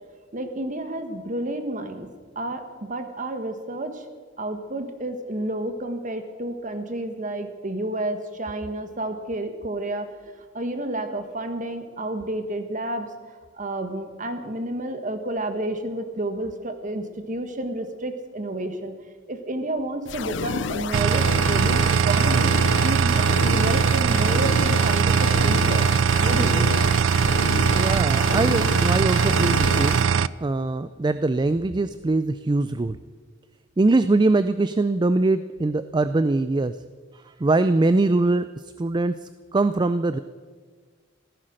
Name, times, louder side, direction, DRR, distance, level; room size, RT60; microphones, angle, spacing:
voice 1, 0.3-4.1 4.4-13.1 13.5-19.0 19.3-22.6 22.8-26.8, right 1 dB, 40° right, 8 dB, 1.6 m, -30 dB
sound 1, 20.1-30.1, left 5 dB, 65° left, 0.5 m, -31 dB
sound 2, 20.9-30.3, right 6 dB, 85° right, 0.4 m, -20 dB
voice 2, 27.7-30.1 30.4-33.0 33.8-36.8 37.4-40.2, right 2 dB, 25° right, 13 dB, 0.4 m, -22 dB
15.5 x 14.0 x 6.5 m, 1.5 s
head